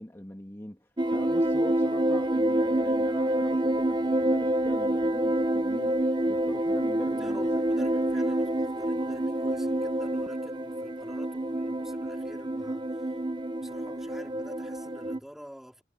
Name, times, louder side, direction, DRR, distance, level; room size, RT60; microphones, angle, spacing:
voice 1, 0.0-7.5 7.8-7.9, equal, 15° left, 1.8 m, -42 dB
sound 1, 1.0-15.2, right 1 dB, 25° right, 0.8 m, -27 dB
voice 2, 7.0-13.1 13.6-15.8, equal, ahead, 3.2 m, -48 dB
head